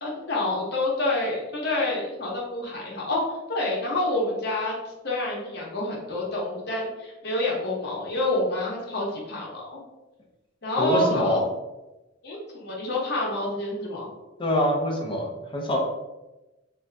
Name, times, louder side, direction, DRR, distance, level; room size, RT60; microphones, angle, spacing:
voice 1, 0.0-3.2 3.5-4.7 5.0-9.8 10.6-11.4 12.2-14.1, left 2 dB, 50° left, -3 dB, 1.0 m, -28 dB
voice 2, 10.8-11.4 14.4-15.8, left 1 dB, 25° left, -1 dB, 0.6 m, -24 dB
3.7 x 2.7 x 3.3 m, 1.0 s
head